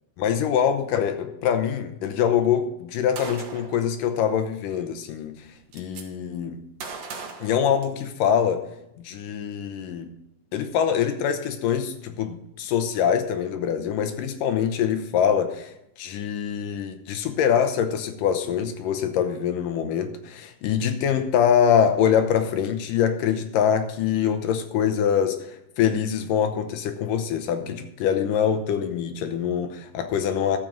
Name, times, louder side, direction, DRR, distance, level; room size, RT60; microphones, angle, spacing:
voice 1, 0.2-5.5 5.7-6.6 7.4-8.6 9.0-10.1 10.5-15.7 16.0-30.6, left 8 dB, 80° left, 8 dB, 2.5 m, -24 dB
Gunshot gunfire, 3.2-3.8 5.0-5.1 5.3-6.0 6.8-8.3, right 5 dB, 60° right, 2.1 m, -38 dB
12.5 x 7.7 x 5.3 m, 0.84 s
omnidirectional pair, 3.9 m